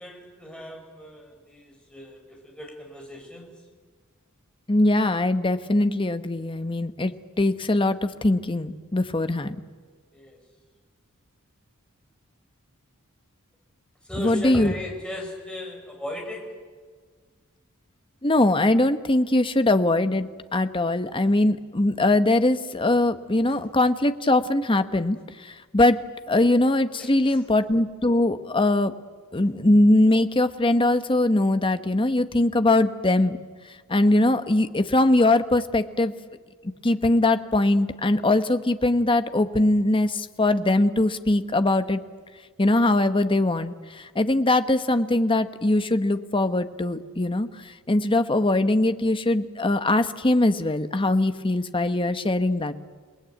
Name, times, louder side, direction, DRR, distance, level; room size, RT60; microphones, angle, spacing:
voice 1, 0.0-3.5 10.1-10.4 14.0-16.4 23.5-23.6 27.0-27.4, left 1 dB, 5° left, 0 dB, 5.3 m, -37 dB
voice 2, 4.7-9.6 14.2-14.7 18.2-26.0 26.3-28.9 29.3-33.4 33.9-36.1 36.8-42.0 42.6-47.5 47.9-52.8, left 2 dB, 25° left, 10 dB, 1.0 m, -21 dB
29.0 x 19.0 x 9.1 m, 1.6 s
head